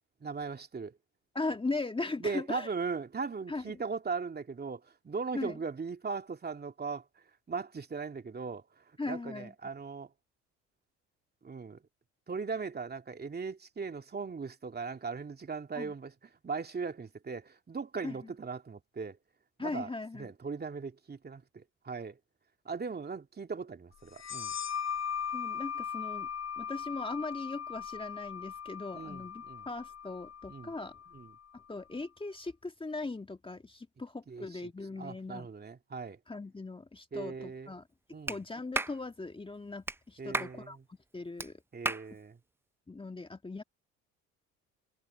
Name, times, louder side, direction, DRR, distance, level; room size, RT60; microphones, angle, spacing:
voice 1, 0.2-1.0 2.2-7.1 7.5-10.1 11.4-11.8 12.3-16.1 16.4-19.2 19.6-22.2 22.6-24.5 28.9-29.7 30.5-30.7 31.1-31.3 34.3-34.7 35.0-36.2 37.1-37.7 38.1-38.4 40.2-40.8 41.7-42.4, right 5 dB, 30° right, 2.6 m, -39 dB
voice 2, 1.4-2.7 3.5-3.6 5.3-5.6 9.0-9.5 15.7-15.9 18.0-18.3 19.6-20.3 25.3-26.3 26.6-31.0 31.5-35.5 36.3-37.9 38.3-41.6 42.9-43.6, left 3 dB, 15° left, 1.8 m, -39 dB
sound 1, 24.1-31.4, left 7 dB, 50° left, 3.5 m, -39 dB
Clapping, 38.3-38.4 38.7-39.0 39.9-40.0 40.3-40.6 41.4-41.5 41.9-42.1, right 2 dB, 5° right, 0.6 m, -32 dB
hypercardioid pair, 70°, 35 cm